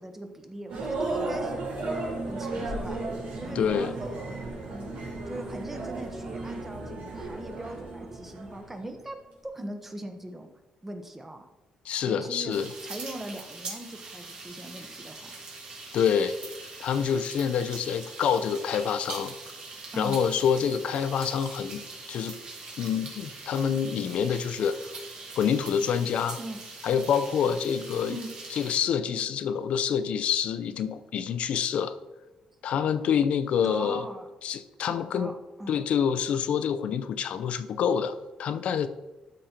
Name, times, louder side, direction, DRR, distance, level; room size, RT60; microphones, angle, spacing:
voice 1, 0.0-2.0 2.2-3.0 3.3-4.3 4.7-10.5 10.8-11.5 12.0-12.6 12.8-15.4 19.9-20.2 26.4-26.6 28.1-28.3 33.6-34.3 34.9-35.9, right 1 dB, 15° right, 6 dB, 1.0 m, -40 dB
sound 1, 0.7-9.0, right 2 dB, 85° right, 3.5 m, -34 dB
voice 2, 3.5-3.9 11.8-12.7 15.9-16.4 16.8-19.3 20.0-21.8 22.1-22.4 22.8-24.8 25.4-26.4 26.8-28.2 28.5-31.9 32.6-34.0 34.4-35.3 35.7-38.9, left 7 dB, 65° left, 11 dB, 0.6 m, -27 dB
sound 2, 12.5-28.8, right 3 dB, 50° right, 2.7 m, -42 dB
12.5 x 5.3 x 4.4 m, 1.1 s
cardioid pair, 145°, 2 cm